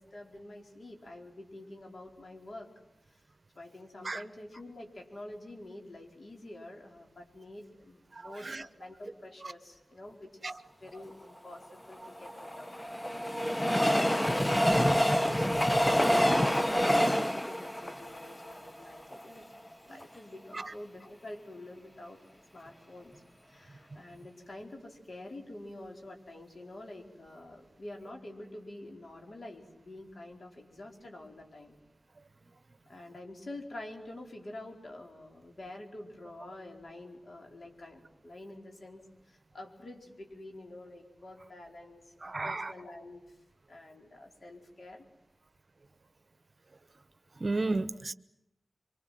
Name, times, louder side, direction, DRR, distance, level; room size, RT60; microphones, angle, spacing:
voice 1, 0.0-2.7 3.5-12.9 13.3-19.5 19.8-22.2 22.5-23.1 23.5-31.8 32.9-39.0 39.3-43.2 43.7-45.1, left 1 dB, 65° left, 2 dB, 4.8 m, -47 dB
Train, 11.9-19.2 19.7-19.8 20.0-20.1, equal, 15° left, 0.9 m, -27 dB
voice 2, 42.2-42.7 47.4-48.1, right 2 dB, 50° right, 14 dB, 1.0 m, -32 dB
25.0 x 24.5 x 7.7 m, 0.85 s
cardioid pair, 50°, 0 cm